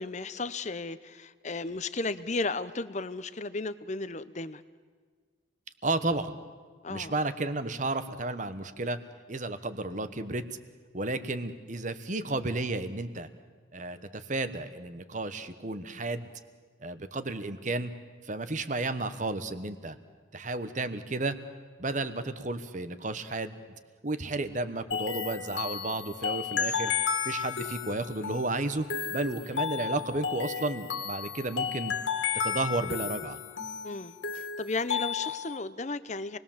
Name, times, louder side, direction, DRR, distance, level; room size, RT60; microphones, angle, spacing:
voice 1, 0.0-4.6 6.8-7.2 33.8-36.4, left 3 dB, 35° left, 14 dB, 0.8 m, -34 dB
voice 2, 5.8-6.4 6.9-9.0 9.3-10.4 10.9-13.3 13.7-16.3 16.8-17.9 18.2-20.0 20.3-21.4 21.8-23.6 24.0-26.9 27.2-28.9 29.1-31.9 32.4-33.4, right 2 dB, 40° right, 11 dB, 1.1 m, -32 dB
sound 1, 24.9-35.6, left 7 dB, 75° left, 2.0 m, -33 dB
27.5 x 20.5 x 7.3 m, 1.5 s
head